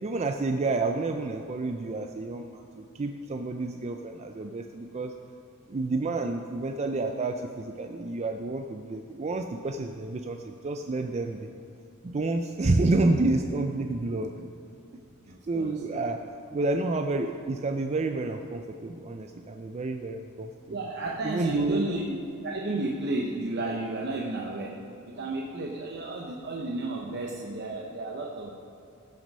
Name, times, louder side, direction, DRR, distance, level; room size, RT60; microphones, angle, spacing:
voice 1, 0.0-5.1 5.7-11.5 12.0-14.3 15.5-16.2 16.5-20.8 21.2-21.9, right 2 dB, 30° right, 5 dB, 0.4 m, -29 dB
voice 2, 15.3-15.8 20.7-24.8 25.1-28.5, right 2 dB, 50° right, -1 dB, 0.9 m, -32 dB
15.0 x 6.0 x 5.4 m, 2.6 s
head